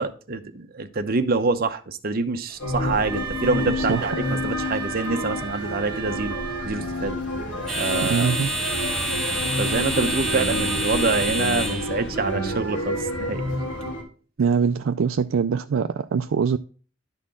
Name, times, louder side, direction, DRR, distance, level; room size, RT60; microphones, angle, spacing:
voice 1, 0.0-6.4 6.6-7.2 7.8-8.3 9.6-13.4, right 3 dB, 50° right, 0.8 m, -26 dB
sound 1, 2.5-13.8, right 2 dB, 5° left, 1.6 m, -31 dB
sound 2, 2.6-14.0, left 1 dB, 70° left, 3.1 m, -29 dB
Wind instrument woodwind instrument, 3.0-7.2, right 9 dB, 15° right, 1.1 m, -35 dB
voice 2, 3.8-4.1 8.0-8.5 14.4-16.6, right 6 dB, 75° right, 0.4 m, -23 dB
11.0 x 4.3 x 3.6 m
head